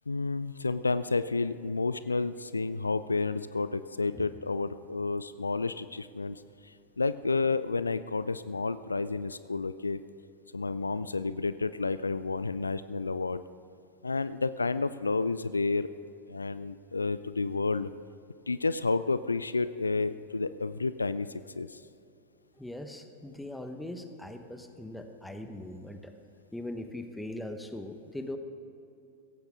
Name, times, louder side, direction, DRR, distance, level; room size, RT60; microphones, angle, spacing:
voice 1, 0.1-10.0 10.5-13.4 14.0-15.9 16.3-17.9 18.5-21.8, left 3 dB, 80° left, 15 dB, 0.3 m, -30 dB
voice 2, 22.6-26.1 26.5-28.4, left 1 dB, 5° left, 7 dB, 1.1 m, -40 dB
16.5 x 15.5 x 3.7 m, 2.7 s
figure-of-eight pair, 90°, 0 cm